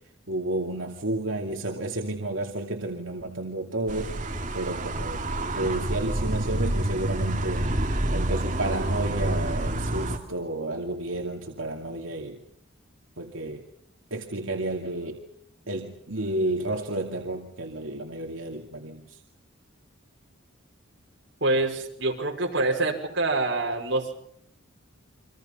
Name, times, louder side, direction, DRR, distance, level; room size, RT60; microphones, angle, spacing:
voice 1, 0.3-4.2 4.5-5.2 5.6-7.7 8.1-12.4 13.2-13.6 14.1-15.2 15.7-19.2, right 2 dB, 80° right, 1 dB, 2.5 m, -31 dB
sound 1, 3.9-10.2, right 1 dB, 35° right, 2.5 m, -28 dB
voice 2, 21.4-24.1, right 2 dB, 60° right, 0 dB, 5.8 m, -26 dB
29.5 x 25.0 x 5.6 m, 0.72 s
head